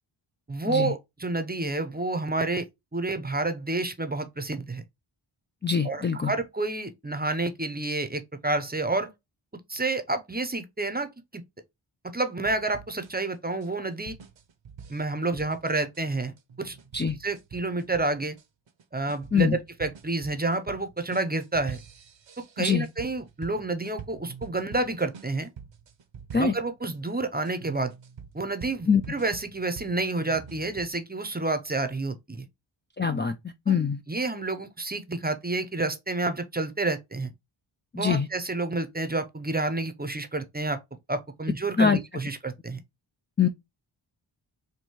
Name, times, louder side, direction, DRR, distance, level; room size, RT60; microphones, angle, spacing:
voice 1, 0.5-2.7 2.9-4.8 5.8-9.1 9.7-11.4 12.1-14.2 14.9-16.8 17.2-18.4 18.9-21.8 22.4-25.5 26.3-27.9 28.3-32.4 33.7-33.8 34.1-37.3 37.9-40.8 41.1-42.8, right 2 dB, 20° right, 0.6 m, -29 dB
voice 2, 5.6-6.3 16.9-17.2 19.3-19.6 22.6-22.9 26.3-26.5 28.9-29.0 33.0-33.4 33.7-34.0 37.9-38.3 41.8-42.0 43.4-43.5, left 6 dB, 25° left, 0.3 m, -23 dB
sound 1, 12.5-26.9 27.4-30.9, right 7 dB, 65° right, 0.7 m, -46 dB
4.4 x 2.6 x 2.9 m
wide cardioid pair, 70°, 49 cm